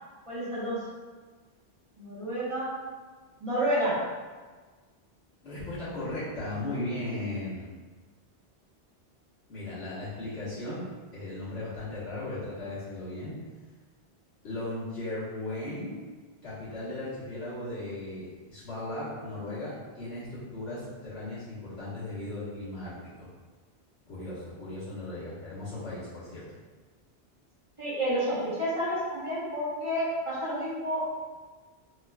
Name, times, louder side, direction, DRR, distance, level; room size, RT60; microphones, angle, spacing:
voice 1, 0.3-0.8 2.0-2.7 3.4-4.0 27.8-31.1, equal, 30° right, -10 dB, 1.0 m, -30 dB
voice 2, 5.4-7.7 9.5-10.8 11.1-13.3 14.4-15.9 16.4-23.3 24.1-26.6, left 2 dB, 80° left, -11 dB, 1.7 m, -37 dB
3.7 x 3.1 x 2.2 m, 1.4 s
omnidirectional pair, 1.1 m